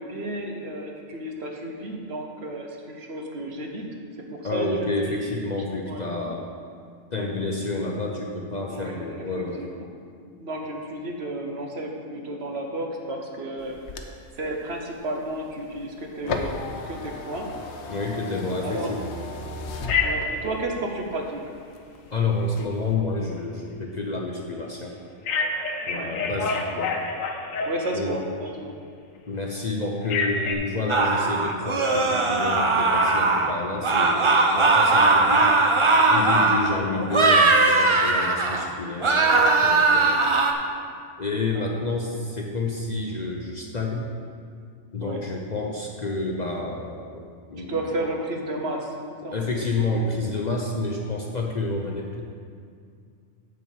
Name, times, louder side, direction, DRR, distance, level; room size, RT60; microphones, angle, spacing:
voice 1, 0.0-3.8 4.4-5.4 5.8-6.0 7.1-7.3 7.9-8.0 8.7-9.9 10.4-17.5 18.6-19.7 20.0-21.4 25.8-26.1 27.6-28.7 36.6-37.1 41.5-41.7 45.0-45.2 47.6-48.9 49.2-49.3 51.0-51.1, right 1 dB, 55° right, 1 dB, 1.2 m, -33 dB
voice 2, 4.4-6.5 7.1-9.6 17.9-19.1 22.1-25.0 25.9-27.0 27.9-28.2 29.3-35.5 36.1-40.2 41.2-44.1 44.9-48.0 49.3-52.2, left 3 dB, 40° left, 0 dB, 0.7 m, -29 dB
sound 1, 13.6-20.7 21.1-22.1 22.5-22.9, left 3 dB, 65° left, 1.0 m, -35 dB
Telephone, 19.9-20.4 25.3-28.1 30.1-30.5, left 4 dB, 90° left, 1.2 m, -27 dB
sound 2, 30.9-33.5 33.8-36.7 37.1-38.7 39.0-40.5, right 3 dB, 35° right, 0.5 m, -19 dB
9.3 x 4.6 x 7.2 m, 2.3 s
omnidirectional pair, 1.3 m